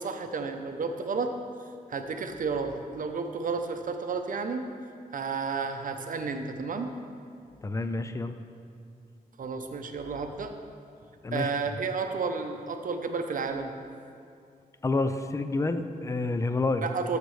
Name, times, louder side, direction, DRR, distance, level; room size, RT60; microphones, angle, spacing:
voice 1, 0.0-1.3 1.9-4.6 5.1-6.9 9.4-10.5 11.3-13.7 16.8-17.2, right 4 dB, 60° right, 6 dB, 0.7 m, -32 dB
voice 2, 7.6-8.4 11.2-11.5 14.8-16.9, left 3 dB, 20° left, 9 dB, 0.4 m, -28 dB
13.0 x 6.6 x 3.2 m, 2.3 s
wide cardioid pair, 130°, 15 cm